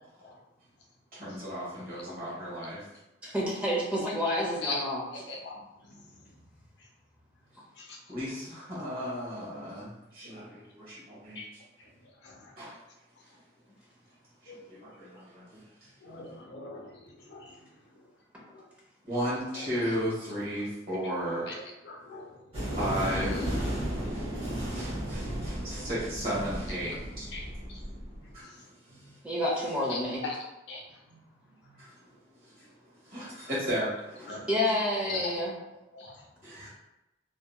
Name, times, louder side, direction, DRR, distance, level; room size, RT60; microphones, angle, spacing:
voice 1, 1.1-2.8 8.1-11.4 12.6-12.8 13.2-13.4 14.4-15.9 19.0-21.5 22.6-27.3 28.3-28.6 28.8-29.2 31.8-31.9 32.6-32.7 33.0-34.4 36.4-36.7, equal, 50° right, -8 dB, 1.4 m, -35 dB
voice 2, 3.2-5.0 18.3-18.4 29.2-30.2 34.5-35.6, left 1 dB, 5° right, -4 dB, 0.5 m, -29 dB
voice 3, 5.3-5.6 7.8-7.9 10.4-10.5 11.4-11.5 12.2-12.5 14.5-14.6 16.0-17.0 17.3-17.5 18.5-18.6 21.5-21.6 21.9-22.3 27.3-27.8 28.9-29.1 29.9-30.3 30.7-30.8 31.6-31.7 34.3-34.5 35.1-35.3 35.9-36.2 36.6-36.7, left 3 dB, 70° left, -1 dB, 0.6 m, -39 dB
sound 1, 22.5-28.2, equal, 30° right, 0.8 m, -34 dB
2.7 x 2.7 x 2.2 m, 0.95 s
head